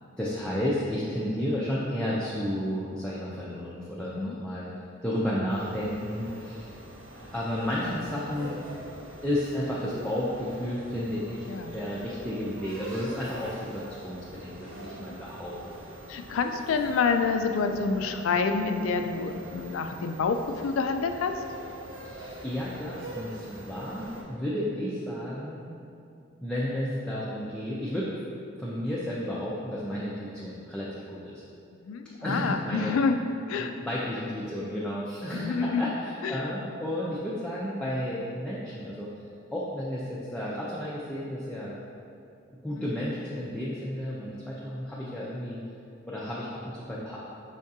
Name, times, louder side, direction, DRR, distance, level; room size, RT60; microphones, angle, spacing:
voice 1, 0.2-4.7 5.0-6.7 7.3-8.6 9.2-11.4 11.7-15.8 22.0-25.6 26.4-28.1 28.6-31.4 32.2-33.0 33.6-39.1 39.5-41.8 42.6-45.6 46.1-47.2, equal, 5° left, -8 dB, 0.4 m, -32 dB
voice 2, 4.0-4.4 11.5-11.8 15.0-15.2 16.1-21.3 31.8-33.2 33.5-33.7 35.3-35.9 36.2-36.5 42.8-42.9, left 4 dB, 80° left, 7 dB, 0.3 m, -28 dB
sound 1, 5.5-24.2, right 1 dB, 85° right, 0.8 m, -44 dB
5.5 x 3.6 x 2.7 m, 2.6 s
head